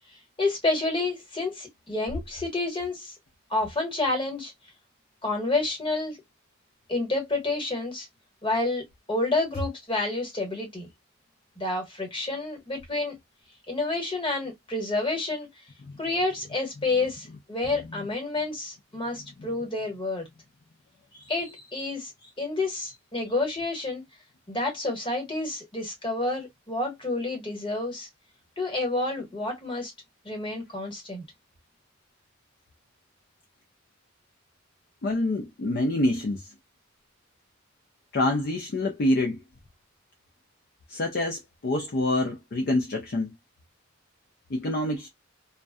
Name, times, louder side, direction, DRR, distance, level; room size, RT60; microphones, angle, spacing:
voice 1, 0.4-3.1 3.5-4.5 5.2-6.2 6.9-8.1 8.4-10.9 11.6-13.2 13.7-15.5 16.0-20.3 21.3-22.1 22.4-24.0 24.5-28.1 28.6-29.9 30.2-31.2, left 2 dB, 25° left, 1.1 m, -29 dB
voice 2, 21.1-21.5 22.2-22.3 35.0-36.5 38.1-39.4 40.9-43.3 44.5-45.1, left 1 dB, 50° left, 0.4 m, -27 dB
2.6 x 2.1 x 2.2 m
head